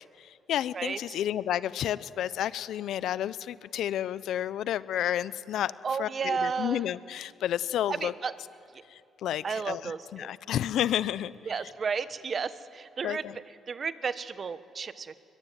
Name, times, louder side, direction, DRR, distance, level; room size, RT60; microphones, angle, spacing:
voice 1, 0.0-5.7 6.0-8.1 8.9-11.3 13.0-13.4, left 11 dB, 80° left, 17 dB, 0.7 m, -31 dB
voice 2, 0.7-1.2 5.8-6.8 7.9-8.3 9.4-10.3 11.5-13.2 13.7-15.2, right 5 dB, 45° right, 14 dB, 1.1 m, -33 dB
22.5 x 21.5 x 9.5 m, 2.6 s
cardioid pair, 90°, 0 cm